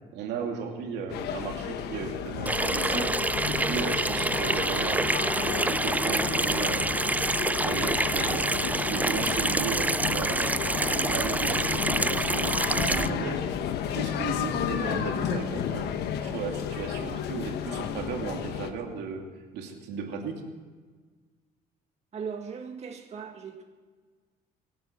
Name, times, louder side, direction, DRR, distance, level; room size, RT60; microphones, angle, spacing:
voice 1, 0.1-6.9 7.6-13.4 13.9-15.9 16.2-19.3 19.5-20.5, right 5 dB, 85° right, 2 dB, 2.8 m, -35 dB
sound 1, 1.1-18.7, left 8 dB, 75° left, 1.2 m, -32 dB
Water tap faucet / Sink (filling or washing), 2.5-13.1, right 2 dB, 10° right, 0.4 m, -27 dB
sound 2, 4.3-6.6, left 2 dB, 15° left, 0.9 m, -45 dB
voice 2, 22.1-23.6, right 6 dB, 40° right, 2 dB, 1.9 m, -38 dB
24.5 x 9.1 x 6.2 m, 1.4 s
cardioid pair, 110°, 17 cm